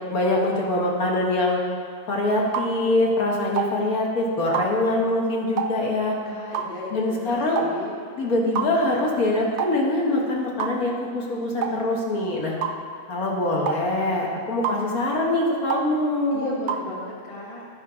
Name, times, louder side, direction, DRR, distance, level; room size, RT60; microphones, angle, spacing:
voice 1, 0.1-1.6 2.1-6.2 6.9-7.6 8.2-12.6 13.1-16.5, left 1 dB, 65° left, -3 dB, 1.8 m, -23 dB
sound 1, 2.5-2.7 3.6-3.7 4.5-4.7 5.6-5.8 6.5-6.7 7.6-7.7 8.6-8.7 9.6-9.8 10.6-10.8 11.6-11.8 12.6-12.8 13.7-13.8 14.6-14.8 15.7-15.9 16.7-16.9, right 7 dB, 65° right, 0.7 m, -27 dB
voice 2, 6.2-7.9 16.3-17.7, left 1 dB, 20° left, -3 dB, 1.3 m, -36 dB
12.0 x 5.4 x 4.9 m, 2.1 s
omnidirectional pair, 1.6 m